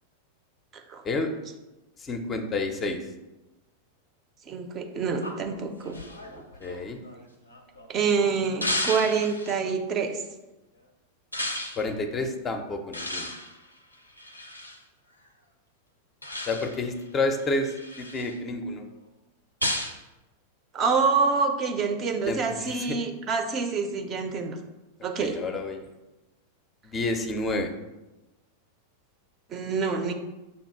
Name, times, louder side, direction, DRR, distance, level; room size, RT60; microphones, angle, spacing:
voice 1, 0.7-1.0 4.5-6.0 7.9-10.2 20.7-24.6 25.0-25.4 29.5-30.1, right 5 dB, 30° right, 5 dB, 0.5 m, -26 dB
voice 2, 2.0-3.1 6.6-7.0 11.8-13.3 16.5-18.9 22.2-23.0 25.2-25.9 26.8-27.7, left 2 dB, 25° left, 6 dB, 0.4 m, -30 dB
sound 1, 5.2-7.9 8.6-9.6 11.3-11.9 12.9-14.8 16.2-16.9 17.4-18.4 19.6-20.0, left 1 dB, 85° left, 0.4 m, -33 dB
5.3 x 2.3 x 4.4 m, 1.0 s
figure-of-eight pair, 90°, 0 cm